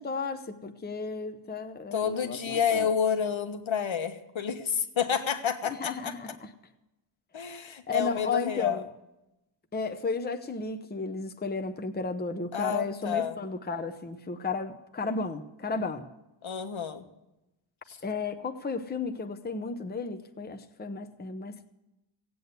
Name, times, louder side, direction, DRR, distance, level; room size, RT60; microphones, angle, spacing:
voice 1, 0.0-2.9 5.6-6.5 7.9-8.9 9.7-16.1 18.0-21.6, left 4 dB, 20° left, 7 dB, 0.7 m, -33 dB
voice 2, 1.9-6.1 7.3-8.8 12.5-13.4 16.4-17.0 17.9-18.0, left 7 dB, 70° left, 7 dB, 1.3 m, -29 dB
16.0 x 8.6 x 8.0 m, 0.93 s
wide cardioid pair, 175°, 48 cm